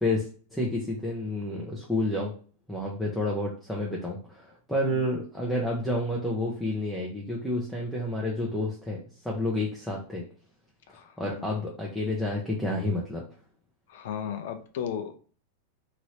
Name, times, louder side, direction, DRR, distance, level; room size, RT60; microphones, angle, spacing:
voice 1, 0.5-2.3 2.7-10.2 11.2-13.2, left 1 dB, ahead, -3 dB, 0.6 m, -30 dB
voice 2, 10.9-11.5 13.9-15.1, left 8 dB, 70° left, 7 dB, 0.5 m, -35 dB
2.9 x 2.6 x 3.1 m, 0.41 s
supercardioid pair, 140°, 0 cm